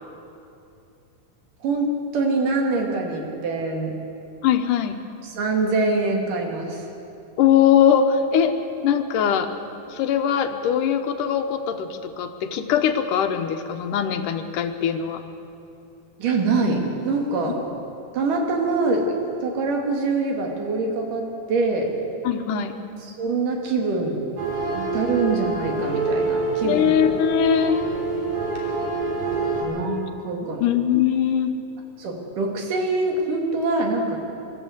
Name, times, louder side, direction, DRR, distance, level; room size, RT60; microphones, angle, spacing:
voice 1, 2.1-4.0 5.2-6.8 16.2-17.7 18.1-19.1 19.4-21.9 23.1-24.2 24.7-27.0 29.6-30.6 32.0-34.2, right 3 dB, 90° right, 1 dB, 3.9 m, -24 dB
voice 2, 4.4-5.0 7.4-8.5 8.8-9.5 9.9-15.2 22.2-22.7 26.6-27.8 30.6-31.5, left 8 dB, 85° left, 7 dB, 2.6 m, -21 dB
sound 1, 24.4-29.6, right 3 dB, 65° right, 4.5 m, -26 dB
25.0 x 13.5 x 8.0 m, 2.8 s
omnidirectional pair, 3.6 m